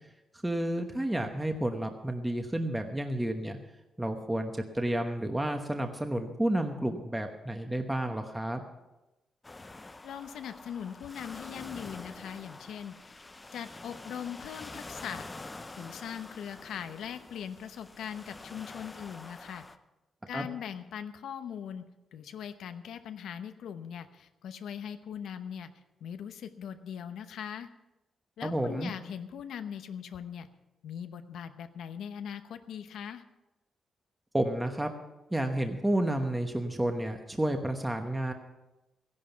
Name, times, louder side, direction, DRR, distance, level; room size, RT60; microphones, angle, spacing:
voice 1, 0.4-3.6 4.0-8.6 20.3-20.5 28.4-28.9 34.3-34.9 35.3-38.3, right 1 dB, 10° right, 5 dB, 1.0 m, -31 dB
sound 1, 9.4-19.8, left 2 dB, 20° left, 0.7 m, -47 dB
voice 2, 10.0-13.1 13.5-15.3 15.7-19.6 20.3-21.8 22.1-25.7 26.0-27.7 28.4-30.5 30.8-33.2, left 8 dB, 85° left, 9 dB, 0.9 m, -40 dB
15.5 x 11.0 x 5.8 m, 1.0 s
cardioid pair, 125°, 0 cm